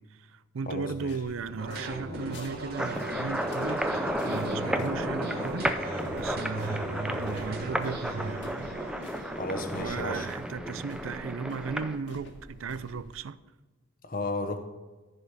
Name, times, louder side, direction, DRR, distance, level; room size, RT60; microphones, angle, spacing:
voice 1, 0.0-3.9 4.2-5.7 6.2-8.8 9.8-13.4, right 5 dB, 90° right, 0.5 m, -36 dB
voice 2, 0.7-1.1 9.4-10.8 14.0-14.6, left 2 dB, 45° left, 1.0 m, -34 dB
sound 1, 0.9-13.1, left 1 dB, 60° left, 1.5 m, -50 dB
sound 2, 1.6-9.9, right 1 dB, 50° right, 2.1 m, -38 dB
sound 3, 2.8-12.0, equal, 5° right, 0.5 m, -33 dB
14.5 x 5.1 x 4.9 m
head